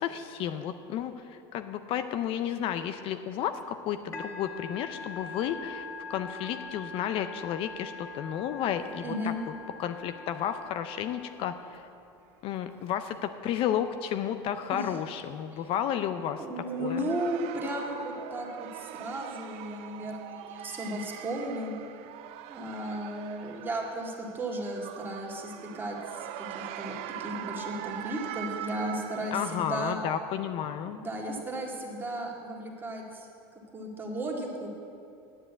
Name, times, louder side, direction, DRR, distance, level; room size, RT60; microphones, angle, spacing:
voice 1, 0.0-9.3 9.8-11.8 12.4-17.1 29.3-31.0, left 9 dB, 45° left, 9 dB, 0.5 m, -32 dB
Musical instrument, 4.1-11.8, left 3 dB, 20° left, 1.4 m, -43 dB
voice 2, 9.0-9.4 14.7-14.9 15.5-15.6 16.4-21.7 22.5-26.9 27.2-30.0 30.9-33.3 33.7-34.7, right 1 dB, 15° right, -1 dB, 1.9 m, -35 dB
sound 1, 16.6-29.9, right 11 dB, 55° right, 0.5 m, -42 dB
9.9 x 7.6 x 8.0 m, 2.6 s
supercardioid pair, 125°, 13 cm